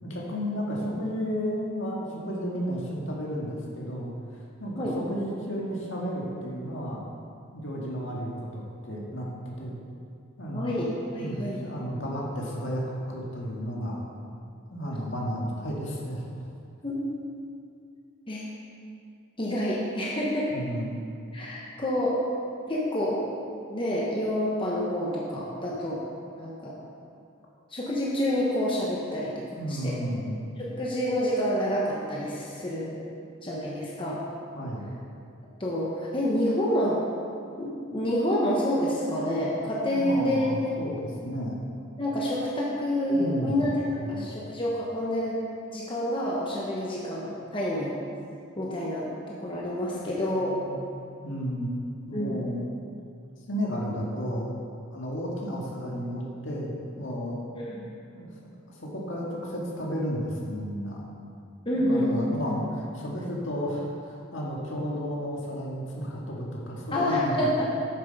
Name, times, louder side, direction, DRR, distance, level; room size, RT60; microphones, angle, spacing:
voice 1, 0.0-4.1 4.6-7.0 7.5-9.3 9.6-9.8 10.4-10.7 11.2-14.1 14.7-16.2 20.5-21.0 29.6-30.4 34.5-34.9 39.9-41.6 43.1-43.6 44.0-44.3 50.0-50.8 51.2-51.7 52.1-52.6 53.5-54.5 54.9-57.4 58.1-58.3 58.7-61.1 61.9-67.6, equal, 65° left, -3 dB, 1.8 m, -33 dB
voice 2, 10.5-10.9 11.1-11.7 16.8-17.0 18.3-18.4 19.4-20.5 21.3-22.2 22.7-23.2 23.7-26.0 26.4-26.7 27.7-30.0 30.6-33.0 33.4-34.2 35.6-37.0 37.6-40.6 42.0-45.4 45.7-47.9 48.6-49.1 49.4-50.5 52.1-52.4 57.5-57.8 61.6-62.6 66.9-67.6, left 1 dB, 25° left, -5 dB, 1.0 m, -28 dB
8.6 x 7.4 x 5.3 m, 2.4 s
head